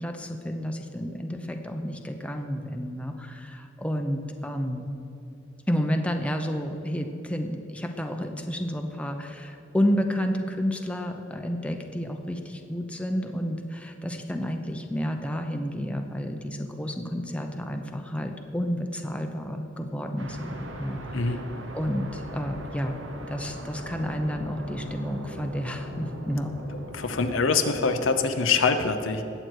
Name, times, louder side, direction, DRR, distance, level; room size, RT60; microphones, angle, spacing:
voice 1, 0.0-4.9 5.7-21.4 21.7-22.9 23.2-26.5, equal, 5° left, 4 dB, 0.7 m, -30 dB
sound 1, 20.2-27.5, right 1 dB, 75° right, 1.3 m, -40 dB
voice 2, 26.9-29.2, left 4 dB, 80° left, 6 dB, 0.8 m, -24 dB
19.5 x 7.9 x 4.7 m, 2.9 s
head